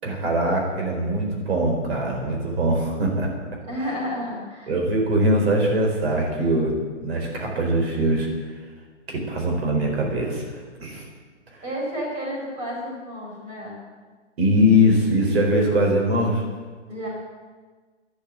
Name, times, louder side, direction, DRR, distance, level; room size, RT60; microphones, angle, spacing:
voice 1, 0.0-3.3 4.7-6.7 7.0-8.3 9.1-11.0 11.5-11.6 14.4-16.4, equal, 60° right, 0 dB, 4.4 m, -22 dB
voice 2, 3.7-4.7 11.6-13.8 16.9-17.1, equal, 20° right, -4 dB, 4.8 m, -31 dB
12.0 x 10.5 x 9.2 m, 1.4 s
hypercardioid pair, 160°, 36 cm